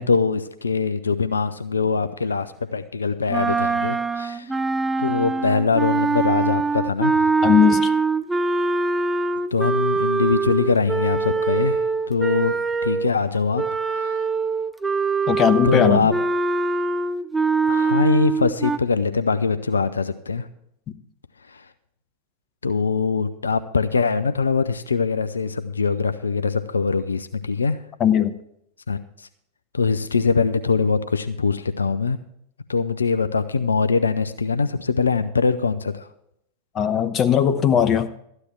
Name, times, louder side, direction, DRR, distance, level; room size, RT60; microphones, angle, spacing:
voice 1, 0.0-4.5 5.0-7.3 9.5-14.3 15.6-16.1 17.6-20.5 21.5-21.6 22.6-27.8 28.9-29.0 29.7-32.2 32.7-36.1, left 4 dB, 80° left, 11 dB, 0.5 m, -22 dB
sound 1, 3.3-13.1 13.5-18.8, right 4 dB, 10° right, 0.6 m, -23 dB
voice 2, 7.4-7.9 15.3-16.1 28.0-28.4 36.7-38.1, left 8 dB, 30° left, 11 dB, 1.0 m, -18 dB
13.5 x 9.7 x 4.5 m, 0.73 s
figure-of-eight pair, 90°, 0 cm